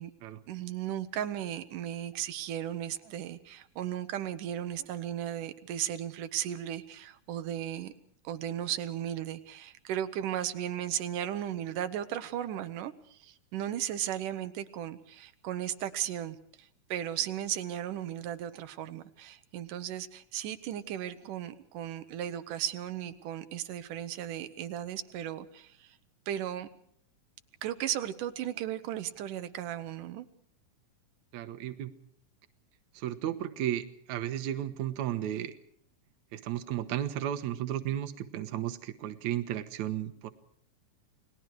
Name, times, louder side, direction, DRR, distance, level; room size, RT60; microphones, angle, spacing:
voice 1, 0.5-7.9 8.2-26.0 26.3-26.7 27.6-30.3, right 11 dB, 85° right, 10 dB, 2.6 m, -36 dB
voice 2, 31.3-31.9 32.9-35.6 36.3-40.3, right 11 dB, 70° right, 10 dB, 2.5 m, -34 dB
30.0 x 20.0 x 4.8 m, 0.65 s
omnidirectional pair, 3.6 m